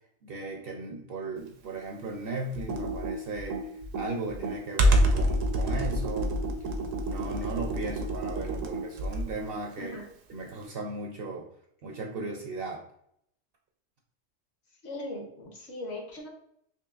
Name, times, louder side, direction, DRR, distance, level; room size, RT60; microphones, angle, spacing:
voice 1, 0.2-6.4 7.1-9.9 10.3-11.5 11.8-12.8, right 3 dB, 60° right, 1 dB, 0.6 m, -36 dB
Computer keyboard, 2.5-9.4, right 1 dB, 80° right, 1.0 m, -27 dB
voice 2, 14.8-16.3, left 1 dB, 60° left, 1 dB, 1.2 m, -39 dB
4.6 x 2.8 x 2.4 m, 0.71 s
omnidirectional pair, 1.3 m